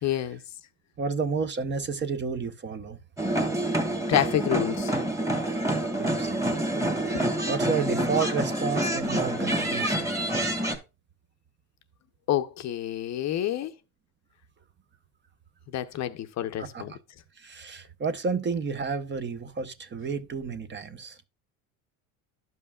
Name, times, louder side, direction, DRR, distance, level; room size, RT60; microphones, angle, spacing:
voice 1, 0.0-0.4 4.1-5.0 7.1-7.2 12.3-13.7 15.7-16.9, left 12 dB, 40° left, 0.7 m, -28 dB
voice 2, 1.0-3.0 6.0-6.5 7.1-10.1 16.6-17.0 17.4-21.2, right 5 dB, 25° right, 0.8 m, -31 dB
sound 1, 3.2-10.8, right 1 dB, 10° right, 1.6 m, -27 dB
12.5 x 5.4 x 2.3 m
supercardioid pair, 105°, 41 cm